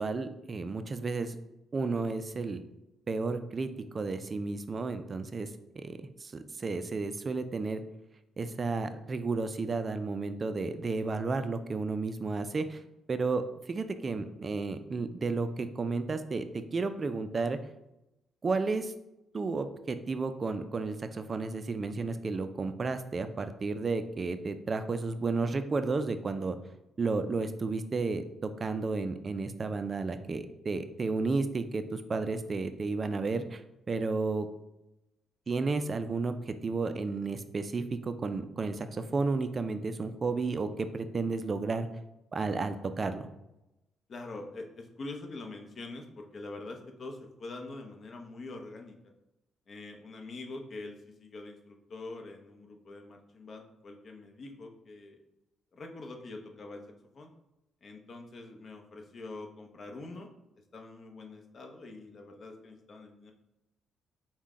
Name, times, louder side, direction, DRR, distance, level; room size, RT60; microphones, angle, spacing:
voice 1, 0.0-1.4 1.7-2.6 3.1-3.7 3.9-5.5 5.8-7.8 8.4-12.8 13.1-17.6 18.4-18.9 19.3-26.6 27.0-33.6 33.9-34.5 35.5-41.9 42.3-43.3, right 3 dB, 35° right, 9 dB, 0.3 m, -32 dB
voice 2, 44.1-49.0 49.7-55.2 55.7-56.8 57.1-57.3 57.8-60.3 60.7-63.3, left 2 dB, 50° left, 3 dB, 0.7 m, -44 dB
5.6 x 2.1 x 3.6 m, 0.93 s
cardioid pair, 90°, 0 cm